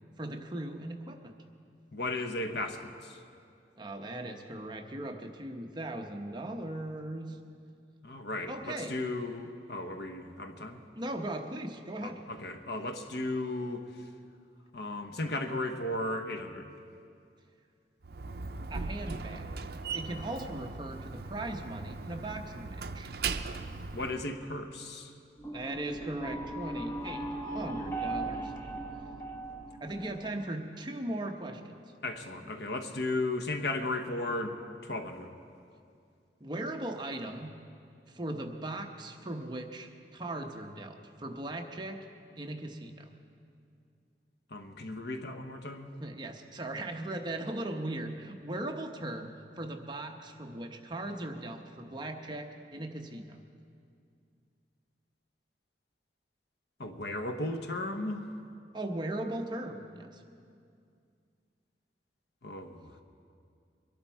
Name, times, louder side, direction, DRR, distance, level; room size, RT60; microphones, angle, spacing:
voice 1, 0.2-1.4 3.8-7.4 8.5-8.9 11.0-12.2 18.7-19.5 19.9-23.1 25.5-27.3 27.5-28.5 29.8-31.8 36.4-37.5 38.1-42.0 42.4-43.1 46.0-53.4 58.7-60.2, right 1 dB, 25° right, 4 dB, 0.9 m, -38 dB
voice 2, 1.9-3.2 8.0-10.8 12.0-13.8 14.7-16.7 23.9-25.1 32.0-34.6 34.8-35.3 44.5-45.9 56.8-58.2 62.4-62.9, left 2 dB, 65° left, 6 dB, 1.1 m, -35 dB
Slam, 18.0-24.2, right 4 dB, 60° right, 0.6 m, -39 dB
sound 1, 25.4-30.4, right 2 dB, 15° left, 1.1 m, -38 dB
22.5 x 11.5 x 4.6 m, 2.4 s
head